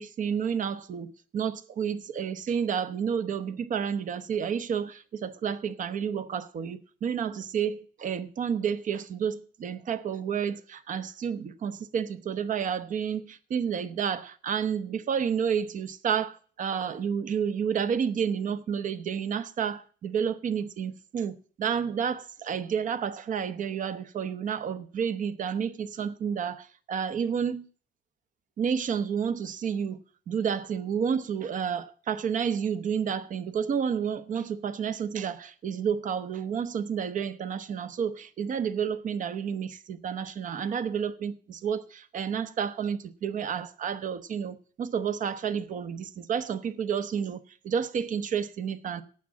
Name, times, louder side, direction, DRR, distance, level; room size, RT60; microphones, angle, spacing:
voice 1, 0.0-27.7 28.6-30.0 30.3-49.0, right 7 dB, 50° right, 1.0 m, -30 dB
9.1 x 7.4 x 8.8 m
cardioid pair, 110°, 17 cm